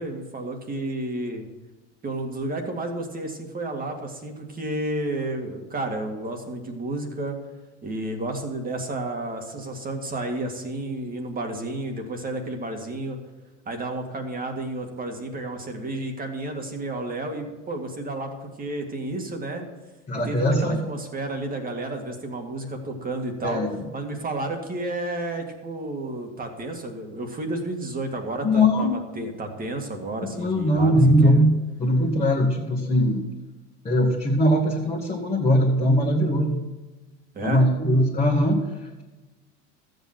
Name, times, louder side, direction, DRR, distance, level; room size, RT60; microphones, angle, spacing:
voice 1, 0.0-1.4 2.0-7.4 7.8-13.2 13.7-19.6 20.3-23.6 23.9-31.4 37.3-37.6, right 2 dB, 25° right, 3 dB, 2.1 m, -31 dB
voice 2, 20.1-20.8 23.4-23.7 28.4-28.9 30.3-31.5 31.8-33.2 33.8-36.6 37.4-38.6, equal, 20° left, -4 dB, 1.8 m, -20 dB
13.0 x 8.0 x 6.0 m, 1.2 s
supercardioid pair, 115°, 33 cm